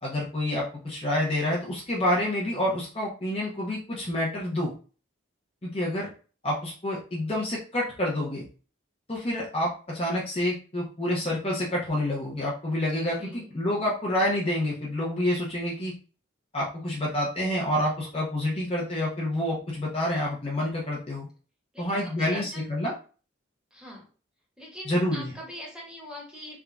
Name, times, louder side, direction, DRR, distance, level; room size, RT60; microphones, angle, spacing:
voice 1, 0.0-4.7 5.6-6.1 6.4-8.4 9.1-15.9 16.5-21.3 21.8-22.9 24.9-25.3, left 1 dB, 30° left, -5 dB, 0.9 m, -28 dB
voice 2, 13.2-13.5 21.7-22.7 23.7-24.1 24.6-26.6, equal, 5° right, -4 dB, 1.4 m, -43 dB
3.6 x 2.6 x 3.5 m, 0.38 s
head